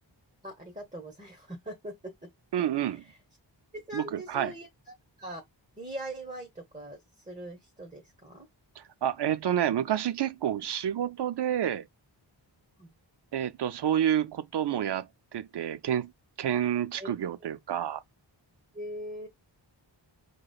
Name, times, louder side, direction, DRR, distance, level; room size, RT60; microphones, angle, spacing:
voice 1, 0.4-1.9 2.2-2.3 2.8-3.2 3.7-5.4 5.8-8.5 12.8-12.9 17.0-17.1 18.7-19.3, right 1 dB, 15° right, 0.9 m, -41 dB
voice 2, 2.5-3.0 3.9-4.5 8.8-11.8 13.3-16.1 16.4-18.0, right 10 dB, 65° right, 0.5 m, -29 dB
4.8 x 2.2 x 2.3 m
wide cardioid pair, 70°, 46 cm